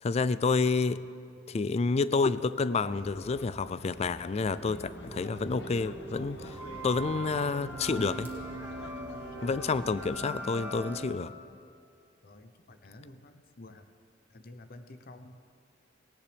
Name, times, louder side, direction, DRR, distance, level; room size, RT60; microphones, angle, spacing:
voice 1, 0.0-1.0 1.5-6.6 6.8-8.3 9.4-11.3, left 4 dB, 35° left, 16 dB, 0.4 m, -29 dB
sound 1, 2.9-10.3, left 1 dB, 70° left, 1.2 m, -47 dB
sound 2, 4.6-11.1, right 2 dB, 10° right, 2.2 m, -41 dB
voice 2, 12.2-13.9 14.3-15.4, left 2 dB, 55° left, 8 dB, 0.8 m, -50 dB
18.5 x 17.5 x 3.4 m, 2.4 s
head